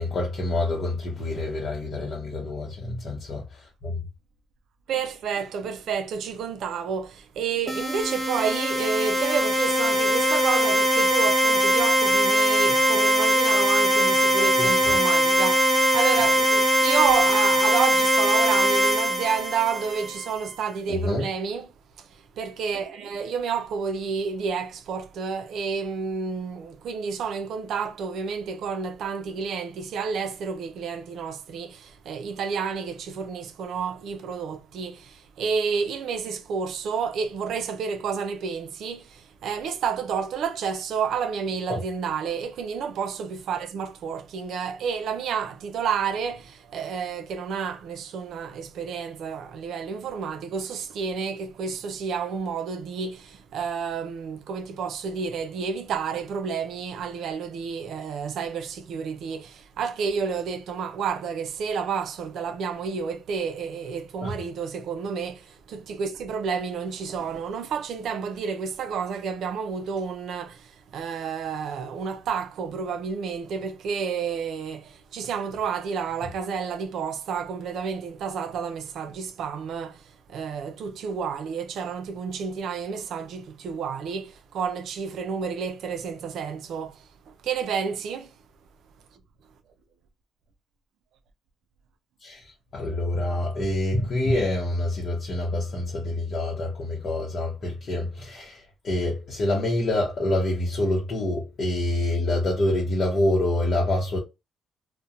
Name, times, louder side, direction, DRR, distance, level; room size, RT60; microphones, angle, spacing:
voice 1, 0.0-3.4 3.8-4.0 14.6-14.8 20.9-21.3 41.7-41.8 64.2-64.3 92.2-92.4 92.7-98.6 98.8-104.2, left 1 dB, 55° left, 0.8 m, -26 dB
voice 2, 4.9-88.3 98.4-98.5, right 6 dB, 75° right, 0.4 m, -30 dB
sound 1, 7.7-20.4, equal, 25° right, 0.7 m, -21 dB
2.8 x 2.1 x 2.4 m
cardioid pair, 90°, 0 cm